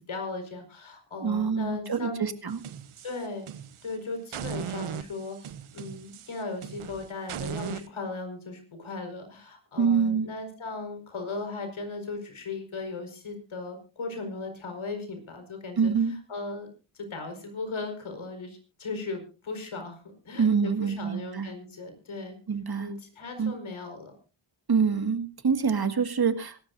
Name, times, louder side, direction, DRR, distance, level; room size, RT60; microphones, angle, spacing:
voice 1, 0.1-2.3 3.0-3.5 3.8-16.7 16.9-22.4 22.8-24.2, left 3 dB, 75° left, 5 dB, 5.0 m, -37 dB
voice 2, 1.2-2.6 9.8-10.3 15.8-16.1 20.4-21.5 22.5-22.9 23.4-23.5 24.7-26.7, right 6 dB, 50° right, 9 dB, 2.0 m, -26 dB
sound 1, 2.5-3.9 4.3-7.9, right 9 dB, 85° right, 1.0 m, -38 dB
24.5 x 12.5 x 2.7 m, 0.34 s
cardioid pair, 65°, 49 cm